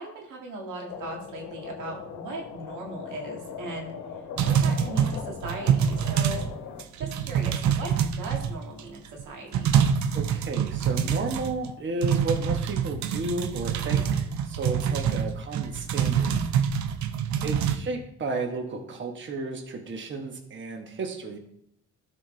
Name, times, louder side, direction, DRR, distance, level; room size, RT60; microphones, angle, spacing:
voice 1, 0.0-3.9 4.4-6.5 7.0-9.7 17.4-17.8, right 2 dB, 85° right, 0 dB, 1.9 m, -38 dB
sound 1, 0.9-6.8, left 6 dB, 85° left, 1.0 m, -40 dB
sound 2, 4.4-6.5 6.8-8.8 9.2-9.3 9.5-11.7 12.0-17.8, right 8 dB, 65° right, 0.7 m, -25 dB
voice 2, 10.1-16.3 17.4-21.4, right 2 dB, 40° right, 3 dB, 1.2 m, -33 dB
12.5 x 4.4 x 3.2 m, 0.73 s
cardioid pair, 90°, 30 cm